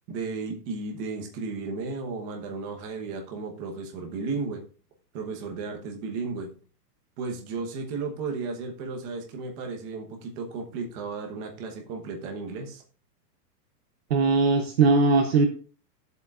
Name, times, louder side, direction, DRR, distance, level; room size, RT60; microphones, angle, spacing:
voice 1, 0.1-4.6 5.1-6.5 7.2-12.8, right 4 dB, 20° right, 2 dB, 1.1 m, -34 dB
voice 2, 14.1-15.5, right 4 dB, 40° right, 6 dB, 0.7 m, -20 dB
13.0 x 7.9 x 2.5 m, 0.39 s
supercardioid pair, 175°, 49 cm